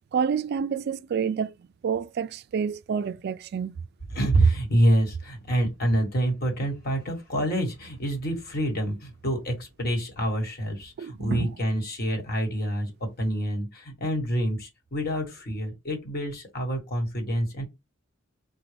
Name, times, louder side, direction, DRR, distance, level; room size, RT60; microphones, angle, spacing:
voice 1, 0.1-1.5 1.8-3.8 11.0-11.5, right 6 dB, 55° right, 0.3 m, -28 dB
voice 2, 4.1-17.6, right 1 dB, 50° left, 1.3 m, -27 dB
4.9 x 2.2 x 3.3 m
head